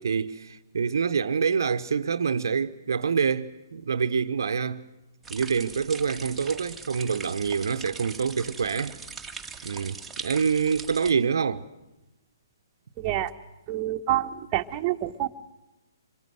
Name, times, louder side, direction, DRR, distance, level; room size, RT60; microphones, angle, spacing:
voice 1, 0.0-4.8 5.3-9.0 9.6-11.6, right 6 dB, 65° right, 0.9 m, -26 dB
sound 1, 5.2-11.1, right 5 dB, 5° right, 1.7 m, -41 dB
voice 2, 13.0-13.3 13.7-15.3, right 13 dB, 25° right, 1.2 m, -27 dB
26.0 x 23.5 x 7.8 m
figure-of-eight pair, 135°, 2 cm